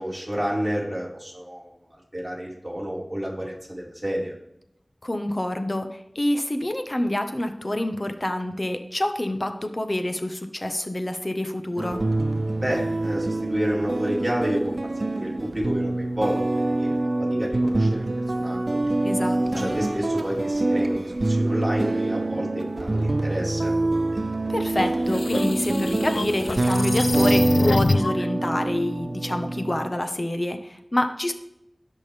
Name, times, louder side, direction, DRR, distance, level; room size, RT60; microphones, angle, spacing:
voice 1, 0.0-1.7 2.1-4.4 12.6-14.7 15.0-16.3 16.8-16.9 17.2-18.1 18.4-18.8 19.6-23.7, equal, 10° right, -5 dB, 4.8 m, -29 dB
voice 2, 5.0-12.0 19.0-19.7 24.5-31.3, left 1 dB, 40° left, 7 dB, 1.2 m, -27 dB
sound 1, 11.8-29.9, right 2 dB, 60° right, 0.4 m, -25 dB
sound 2, 24.8-28.3, left 3 dB, 90° left, 0.4 m, -27 dB
17.0 x 6.2 x 3.5 m, 0.79 s
wide cardioid pair, 45°, 0 cm